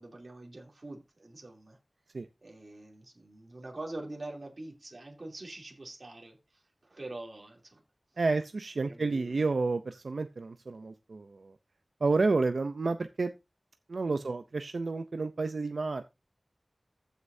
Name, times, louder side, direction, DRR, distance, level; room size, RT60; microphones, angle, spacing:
voice 1, 0.0-1.8 2.4-7.8 8.8-9.4 14.1-14.3, right 2 dB, 60° right, 3.0 m, -45 dB
voice 2, 8.2-11.5 12.0-13.3 13.9-16.0, right 3 dB, 85° right, 0.6 m, -30 dB
14.5 x 6.6 x 2.7 m
wide cardioid pair, 65°, 0 cm